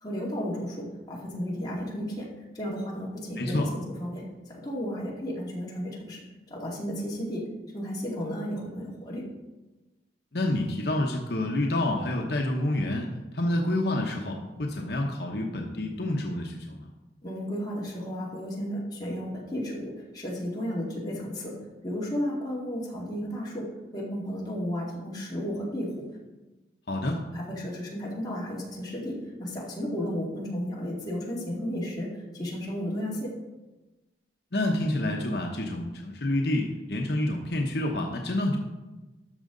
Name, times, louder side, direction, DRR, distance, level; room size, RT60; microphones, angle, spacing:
voice 1, 0.0-2.3 2.5-4.2 4.5-6.2 6.5-7.5 7.7-9.2 17.2-21.5 21.8-25.9 27.3-33.3, equal, 20° left, -5 dB, 2.3 m, -33 dB
voice 2, 3.4-3.7 10.3-13.1 13.3-16.9 26.9-27.2 34.5-38.6, left 1 dB, 65° left, 1 dB, 0.9 m, -28 dB
12.5 x 6.4 x 3.9 m, 1.1 s
head